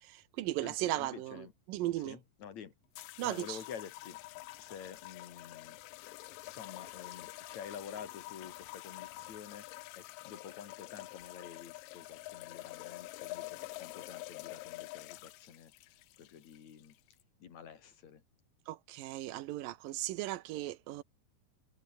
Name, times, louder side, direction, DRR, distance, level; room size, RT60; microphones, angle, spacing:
voice 1, 0.0-2.2 3.2-3.6 18.7-21.0, right 15 dB, 90° right, 2.7 m, -37 dB
voice 2, 0.6-1.5 2.0-2.7 3.2-4.2 4.6-5.8 6.4-15.7 16.2-17.0 17.4-18.2, left 8 dB, 60° left, 3.3 m, -49 dB
sound 1, 3.0-17.2, left 20 dB, 85° left, 2.3 m, -47 dB
omnidirectional pair, 3.9 m